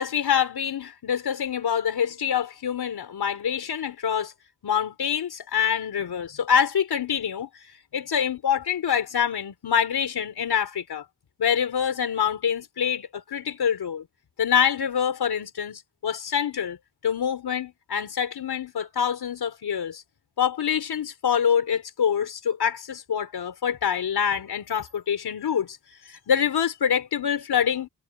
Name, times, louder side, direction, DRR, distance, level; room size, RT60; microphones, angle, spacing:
voice 1, 0.0-4.3 4.6-7.5 7.9-11.1 11.4-14.1 14.4-16.8 17.0-20.0 20.4-25.8 26.1-27.9, left 8 dB, 85° left, 3.8 m, -25 dB
wide cardioid pair, 175°, 37 cm